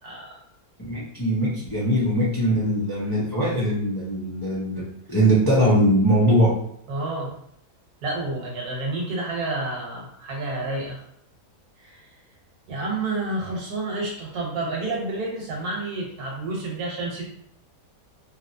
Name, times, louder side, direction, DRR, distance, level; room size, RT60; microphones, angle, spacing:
voice 1, 0.0-0.4 6.9-7.3 8.0-11.0 11.8-12.1 12.7-17.2, right 2 dB, 70° right, -2 dB, 1.4 m, -29 dB
voice 2, 0.8-6.5, equal, 30° left, -8 dB, 0.4 m, -21 dB
3.0 x 2.8 x 2.7 m, 0.71 s
omnidirectional pair, 1.7 m